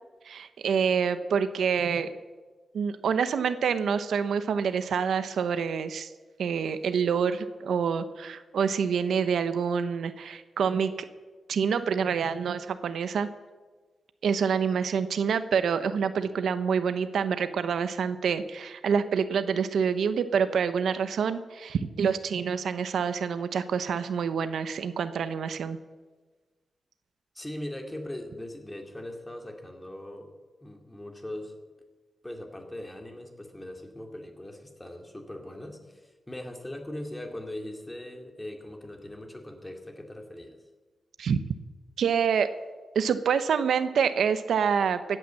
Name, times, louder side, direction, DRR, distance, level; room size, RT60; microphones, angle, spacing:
voice 1, 0.2-2.1 2.7-6.1 6.4-10.9 11.5-13.3 14.2-25.8 41.2-41.4 42.0-42.5 42.9-45.2, right 6 dB, 85° right, 11 dB, 0.9 m, -27 dB
voice 2, 27.3-30.3 30.6-31.6 32.2-40.6, left 1 dB, 10° left, 3 dB, 2.4 m, -40 dB
16.0 x 9.1 x 7.6 m, 1.3 s
cardioid pair, 100°, 0 cm